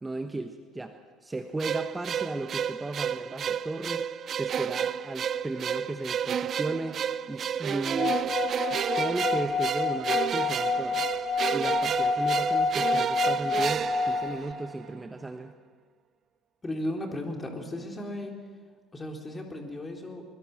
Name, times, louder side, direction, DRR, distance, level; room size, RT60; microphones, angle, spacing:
voice 1, 0.0-8.3 8.7-11.1 11.5-15.5, right 2 dB, 15° right, 7 dB, 1.2 m, -35 dB
sound 1, 1.6-14.9, right 8 dB, 40° right, 0.6 m, -31 dB
Singing / Glass, 7.9-14.5, left 4 dB, 35° left, 1.6 m, -28 dB
voice 2, 16.6-18.4 18.9-20.2, left 1 dB, 20° left, 2 dB, 3.9 m, -35 dB
24.0 x 21.5 x 6.2 m, 1.5 s
figure-of-eight pair, 55°, 0 cm